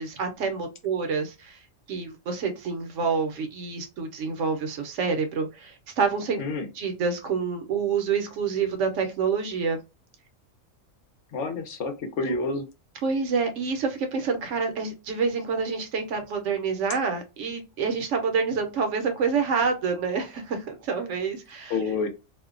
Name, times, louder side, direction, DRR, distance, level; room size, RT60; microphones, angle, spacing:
voice 1, 0.0-1.6 1.9-6.4 6.7-9.8 12.2-12.4 13.0-21.8, right 5 dB, 70° right, 6 dB, 0.9 m, -27 dB
voice 2, 11.3-12.6 21.7-22.1, left 4 dB, 75° left, 7 dB, 0.9 m, -28 dB
2.5 x 2.1 x 2.4 m, 0.26 s
omnidirectional pair, 1.3 m